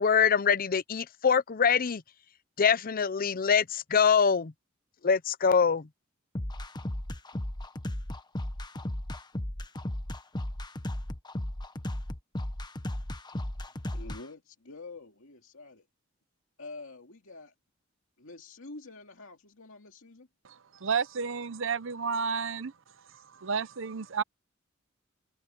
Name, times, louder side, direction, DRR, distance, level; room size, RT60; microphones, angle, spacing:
voice 1, 0.0-2.0 2.6-4.5 5.0-5.9, left 6 dB, 45° left, 0.6 m, -24 dB
sound 1, 6.3-14.2, left 1 dB, 20° left, 1.1 m, -35 dB
voice 2, 13.9-15.9 16.6-17.5 18.2-20.3, left 3 dB, 80° left, 2.4 m, -47 dB
voice 3, 20.8-22.7 23.3-24.2, right 5 dB, 65° right, 0.8 m, -31 dB
head